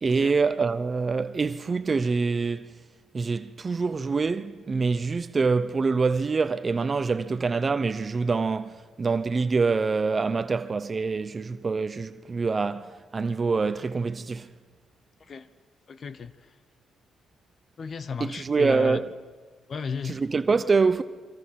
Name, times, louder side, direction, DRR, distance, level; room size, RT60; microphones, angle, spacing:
voice 1, 0.0-2.7 3.1-14.5 18.2-19.1 20.0-21.0, right 4 dB, 35° right, 0.7 m, -25 dB
voice 2, 15.9-16.3 17.8-19.0 19.7-20.2, left 5 dB, 45° left, 0.9 m, -34 dB
28.0 x 24.5 x 5.9 m
cardioid pair, 90°, 0 cm